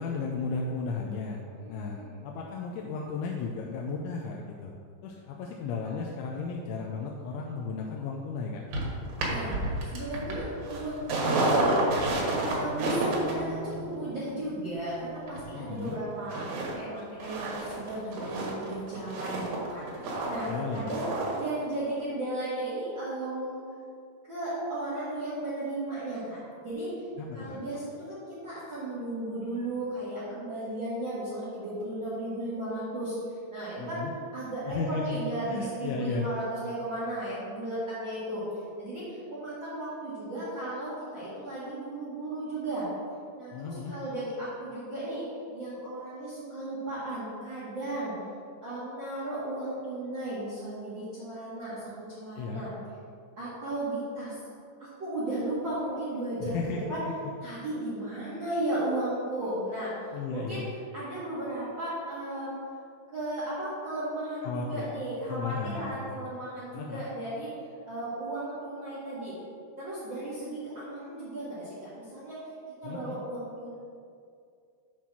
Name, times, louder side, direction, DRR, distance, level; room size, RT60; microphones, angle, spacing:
voice 1, 0.0-1.4 1.7-4.7 5.0-8.6 15.5-16.0 20.5-20.9 27.2-27.6 33.8-34.1 34.7-36.3 43.5-43.9 52.4-52.6 56.4-57.1 60.1-60.6 64.4-64.9 65.3-66.2 66.7-67.0 72.8-73.2, left 4 dB, 85° left, -1 dB, 2.9 m, -34 dB
voice 2, 1.5-2.2 9.2-9.5 9.8-11.8 12.4-21.0 21.3-23.7 24.3-27.0 27.3-33.1 33.5-34.0 34.3-38.4 38.8-42.9 43.3-48.1 48.6-52.7 53.4-54.4 54.8-57.0 57.4-59.9 60.3-60.6 60.9-62.6 63.1-67.5 67.9-69.4 69.8-72.4 72.8-73.8, right 1 dB, 80° right, -10 dB, 1.0 m, -35 dB
sound 1, 8.7-15.9 16.3-16.7 17.0-21.5 21.8-21.9, right 2 dB, 65° right, 2.7 m, -30 dB
8.5 x 4.2 x 6.0 m, 2.4 s
omnidirectional pair, 5.3 m